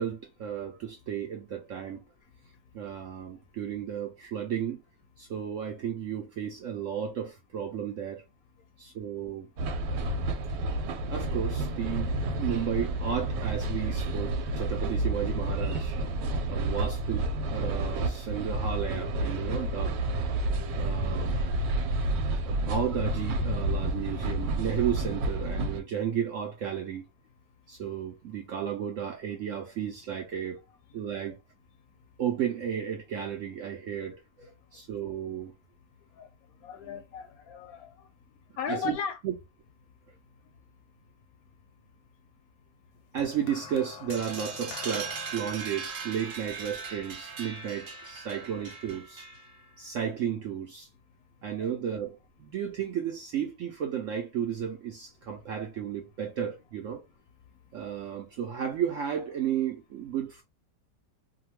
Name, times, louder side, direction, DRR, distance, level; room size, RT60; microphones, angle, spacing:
voice 1, 0.0-2.0 2.7-4.8 5.2-8.2 8.8-9.5 11.1-15.9 16.5-20.0 20.7-21.3 22.5-27.1 27.7-30.6 30.9-31.4 32.2-35.5 38.7-39.0 39.2-39.3 43.1-49.2 49.8-50.9 51.4-57.0 57.7-60.4, right 9 dB, 75° right, 0.7 m, -33 dB
sound 1, 9.6-25.8, right 2 dB, 90° right, 1.3 m, -30 dB
voice 2, 36.6-37.9 38.6-39.2 51.6-51.7, left 6 dB, 70° left, 0.9 m, -36 dB
sound 2, 43.2-47.6 48.5-48.8, left 8 dB, 90° left, 1.3 m, -46 dB
sound 3, 44.1-49.6, right 5 dB, 55° right, 1.2 m, -39 dB
2.8 x 2.2 x 2.9 m
omnidirectional pair, 1.9 m